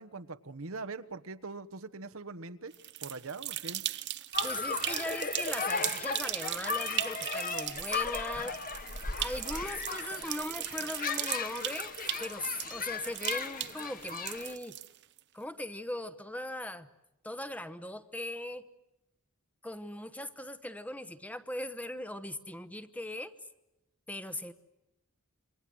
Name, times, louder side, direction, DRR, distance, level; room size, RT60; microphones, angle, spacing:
voice 1, 0.0-2.7 3.0-3.8, right 3 dB, 70° right, 10 dB, 1.3 m, -42 dB
sound 1, 2.7-15.2, right 13 dB, 55° right, 0.9 m, -38 dB
sound 2, 4.3-14.5, left 5 dB, 40° left, 1.5 m, -37 dB
voice 2, 4.4-8.6 9.1-11.9 12.2-14.8 15.3-16.9 17.2-18.7 19.6-23.3 24.1-24.5, left 1 dB, 5° left, 13 dB, 1.1 m, -39 dB
28.0 x 24.5 x 7.9 m, 0.92 s
head